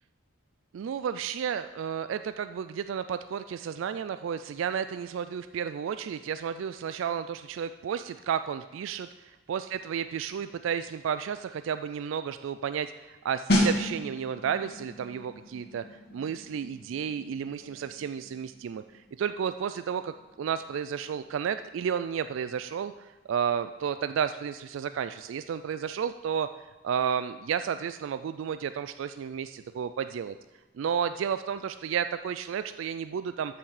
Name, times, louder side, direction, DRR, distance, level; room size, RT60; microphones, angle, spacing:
voice 1, 0.7-9.1 9.5-15.8 16.1-18.8 19.2-26.5 26.8-30.4 30.8-33.6, right 7 dB, 75° right, 12 dB, 0.3 m, -32 dB
sound 1, 13.5-24.0 24.3-24.5, left 1 dB, 50° left, 2.2 m, -34 dB
13.5 x 5.9 x 4.9 m, 1.2 s
head